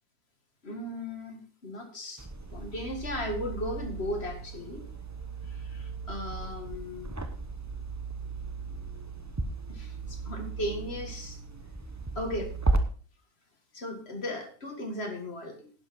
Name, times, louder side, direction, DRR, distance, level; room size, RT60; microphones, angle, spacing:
voice 1, 0.6-2.2 2.5-4.8 5.5-7.1 9.7-11.4 12.2-12.5 13.7-15.7, left 1 dB, 40° left, 5 dB, 2.2 m, -36 dB
sound 1, 2.2-12.8, right 3 dB, 15° right, 0.7 m, -35 dB
11.0 x 10.5 x 4.3 m, 0.40 s
omnidirectional pair, 1.7 m